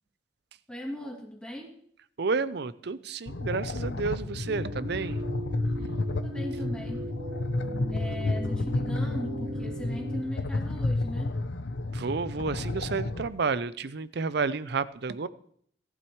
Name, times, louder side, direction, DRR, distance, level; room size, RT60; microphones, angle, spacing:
voice 1, 0.7-1.7 6.2-7.1 7.9-11.3, left 1 dB, 5° left, -1 dB, 2.6 m, -39 dB
voice 2, 2.2-5.2 11.9-15.3, right 4 dB, 65° right, 15 dB, 0.6 m, -31 dB
sound 1, 3.3-13.3, left 2 dB, 90° left, 0.8 m, -31 dB
sound 2, 4.4-10.2, right 1 dB, 50° right, 1.3 m, -38 dB
18.0 x 12.0 x 3.2 m, 0.63 s
head